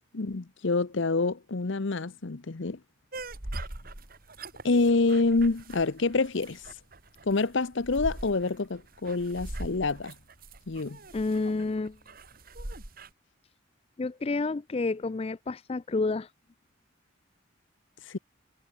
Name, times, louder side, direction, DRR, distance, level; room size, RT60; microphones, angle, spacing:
voice 1, 0.1-2.8 4.6-6.6 7.2-10.1 10.7-11.0 18.0-18.2, left 3 dB, 60° left, 0.8 m, -27 dB
sound 1, 3.1-13.1, right 1 dB, 45° right, 2.7 m, -41 dB
voice 2, 11.1-12.0 14.0-16.3, left 3 dB, 30° left, 0.4 m, -29 dB
head